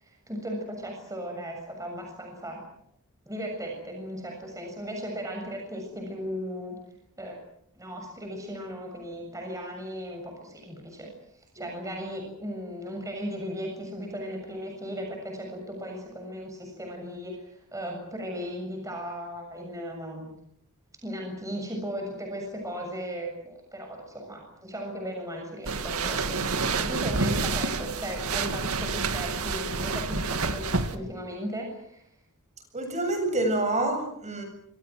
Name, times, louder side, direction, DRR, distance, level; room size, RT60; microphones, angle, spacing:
voice 1, 0.0-2.6 3.3-6.8 7.2-7.4 7.8-11.1 11.5-20.3 21.0-32.0, equal, 15° right, 2 dB, 7.1 m, -36 dB
sound 1, 25.7-31.0, right 4 dB, 80° right, 2.2 m, -28 dB
voice 2, 32.7-34.4, right 2 dB, 30° right, 5 dB, 7.9 m, -27 dB
28.0 x 26.0 x 6.3 m, 0.70 s
head